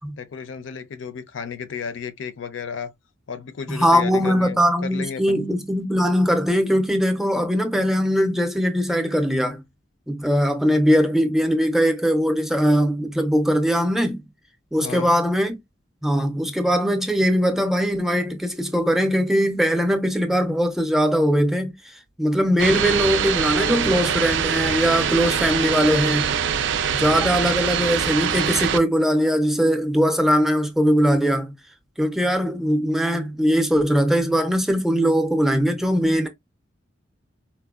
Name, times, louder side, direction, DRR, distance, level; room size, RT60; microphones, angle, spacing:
voice 1, 0.2-2.9 3.3-5.4 14.8-15.1 22.6-22.8, left 6 dB, 70° left, 0.5 m, -33 dB
voice 2, 3.7-9.6 10.1-14.3 14.7-15.6 16.0-26.3 26.9-31.5 32.0-36.3, equal, ahead, 0.5 m, -21 dB
sound 1, 22.6-28.8, right 8 dB, 65° right, 0.4 m, -23 dB
4.2 x 2.1 x 2.3 m
head